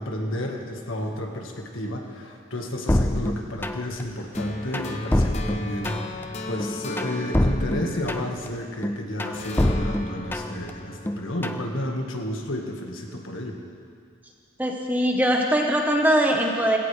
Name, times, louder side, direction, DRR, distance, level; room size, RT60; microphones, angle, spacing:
voice 1, 0.0-13.6, left 1 dB, 85° left, 1 dB, 1.8 m, -32 dB
sound 1, 2.9-4.0 4.4-6.2 6.6-8.5 8.8-10.7 11.1-11.7, left 1 dB, 10° left, 0.4 m, -25 dB
sound 2, 4.3-8.9 9.3-12.4, left 1 dB, 35° left, 0.9 m, -37 dB
voice 2, 14.6-16.8, right 1 dB, 10° right, 1 dB, 1.2 m, -21 dB
19.5 x 17.0 x 3.4 m, 2.3 s
head